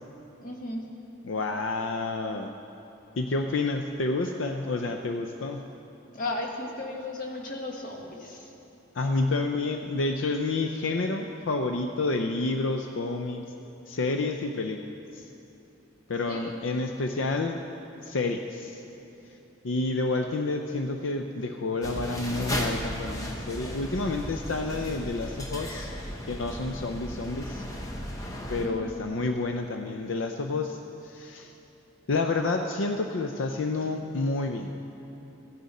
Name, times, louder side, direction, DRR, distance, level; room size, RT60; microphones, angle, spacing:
voice 1, 0.4-0.8 6.1-8.5 16.3-16.6 28.6-29.0, left 2 dB, 45° left, 0 dB, 1.4 m, -35 dB
voice 2, 1.2-2.5 3.2-5.6 8.9-13.4 13.9-14.8 15.1-15.3 16.1-17.6 18.0-18.8 19.6-25.9 26.3-27.6 28.5-31.5 32.1-34.8, left 3 dB, 80° left, 5 dB, 0.5 m, -29 dB
sound 1, 21.8-28.7, left 1 dB, 15° left, 0.9 m, -35 dB
15.0 x 10.0 x 4.1 m, 2.9 s
head